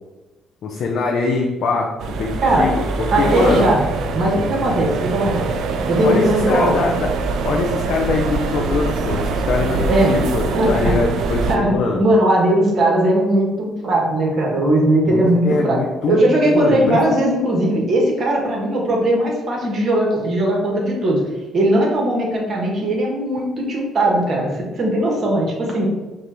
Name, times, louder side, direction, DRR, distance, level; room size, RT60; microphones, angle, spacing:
voice 1, 0.6-1.9 2.2-3.7 6.0-7.1 7.4-12.0 15.0-17.0, left 4 dB, 65° left, 0 dB, 0.5 m, -22 dB
sound 1, 2.0-11.6, right 4 dB, 70° right, 0.4 m, -23 dB
voice 2, 3.1-3.8 4.1-5.5 5.9-6.8 9.9-10.1 10.5-10.9 11.5-15.8 16.1-21.2 21.5-25.9, right 1 dB, 50° right, -1 dB, 1.4 m, -18 dB
5.3 x 2.4 x 3.0 m, 1.1 s
supercardioid pair, 65°, 0 cm